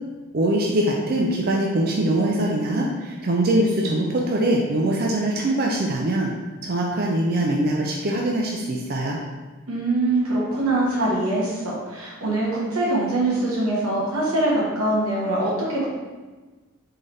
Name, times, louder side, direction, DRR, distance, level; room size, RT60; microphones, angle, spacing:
voice 1, 0.3-6.3 6.6-9.2, right 1 dB, 45° right, -2 dB, 0.4 m, -22 dB
voice 2, 9.7-15.9, right 2 dB, 90° right, -5 dB, 1.4 m, -23 dB
4.0 x 3.8 x 3.3 m, 1.3 s
head